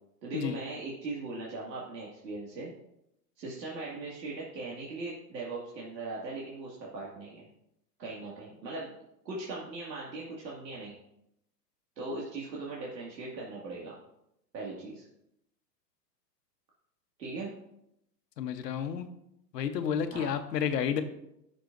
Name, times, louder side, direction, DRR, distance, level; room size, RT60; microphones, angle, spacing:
voice 1, 0.2-2.7 3.4-7.4 8.0-8.9 9.2-10.9 12.0-14.0 14.5-15.0 17.2-17.5 20.1-20.3, right 3 dB, 80° right, -5 dB, 2.3 m, -39 dB
voice 2, 18.4-19.1 19.5-21.0, left 8 dB, 70° left, 8 dB, 1.1 m, -31 dB
14.0 x 6.6 x 2.6 m, 0.80 s
hypercardioid pair, 170°, 50 cm